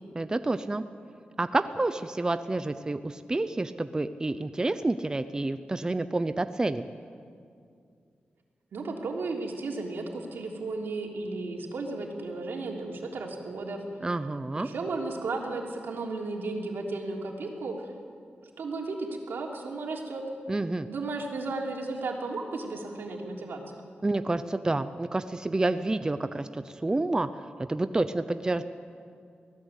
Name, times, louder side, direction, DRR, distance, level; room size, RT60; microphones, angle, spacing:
voice 1, 0.1-0.8 1.4-6.8 14.0-14.7 20.5-20.9 24.0-27.3 27.7-28.6, right 2 dB, 20° right, 10 dB, 0.6 m, -29 dB
voice 2, 8.7-13.8 14.5-17.9 18.6-20.2 20.9-23.6, right 3 dB, 85° right, 0 dB, 3.3 m, -34 dB
24.0 x 17.0 x 8.3 m, 2.3 s
wide cardioid pair, 110°, 4 cm